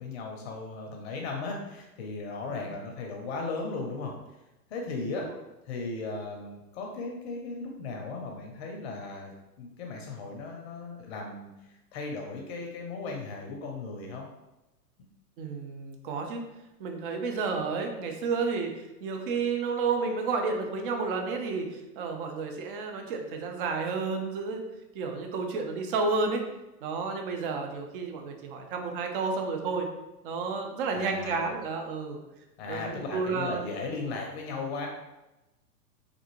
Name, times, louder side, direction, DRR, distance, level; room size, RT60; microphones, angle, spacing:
voice 1, 0.0-4.2 4.7-5.3 5.7-14.3 30.9-31.5 32.6-34.9, left 3 dB, 40° left, 1 dB, 0.6 m, -36 dB
voice 2, 15.4-16.4 16.8-18.7 19.0-24.6 24.9-26.4 26.8-29.9 30.2-32.2 32.7-33.6, right 4 dB, 35° right, 3 dB, 0.5 m, -31 dB
3.3 x 2.5 x 3.0 m, 0.99 s
hypercardioid pair, 115°, 48 cm